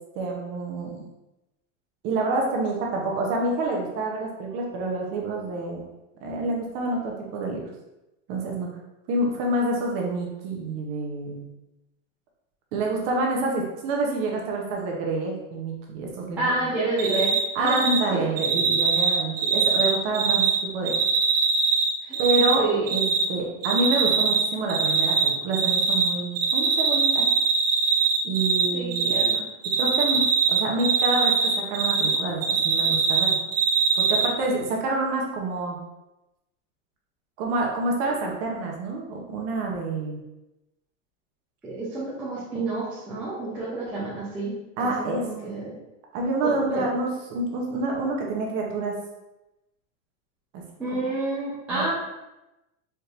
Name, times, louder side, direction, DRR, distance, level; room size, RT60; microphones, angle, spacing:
voice 1, 0.2-1.1 2.0-5.8 6.2-7.6 8.3-8.7 9.1-11.5 12.7-16.5 17.5-20.5 20.7-21.0 22.2-22.6 22.9-27.2 28.2-29.1 29.8-33.4 34.0-35.8 37.4-40.2 44.8-45.5 46.1-49.0 50.5-50.6 50.9-51.0 51.7-51.8, right 2 dB, 35° right, -1 dB, 0.7 m, -27 dB
voice 2, 16.4-18.0 22.1-22.2 22.5-22.9 28.7-29.5 41.6-45.8 46.4-46.8 50.8-51.9, right 2 dB, 5° right, -10 dB, 0.4 m, -29 dB
Cricket, 17.0-17.4 17.7-18.0 18.4-20.6 20.9-22.5 22.9-23.2 23.6-24.4 24.7-26.1 26.4-28.7 28.9-29.3 29.6-32.2 32.4-34.3, right 6 dB, 80° right, 1.4 m, -21 dB
4.4 x 2.6 x 3.2 m, 0.96 s
supercardioid pair, 165°, 39 cm